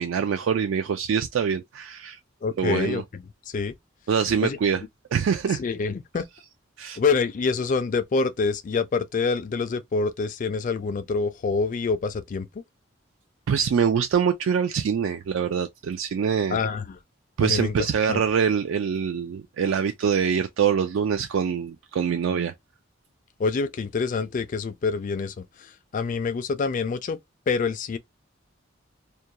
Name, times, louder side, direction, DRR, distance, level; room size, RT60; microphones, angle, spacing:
voice 1, 0.0-2.2 2.6-3.0 4.1-4.8 5.1-5.6 6.8-7.0 13.5-16.6 17.4-22.5, right 7 dB, 75° right, 0.3 m, -24 dB
voice 2, 2.4-3.2 3.5-3.7 4.4-4.6 5.6-6.2 7.0-12.5 16.5-17.0 17.4-17.7 18.1-18.2 23.4-27.2 27.5-28.0, left 4 dB, 40° left, 0.3 m, -26 dB
2.2 x 2.2 x 2.7 m
head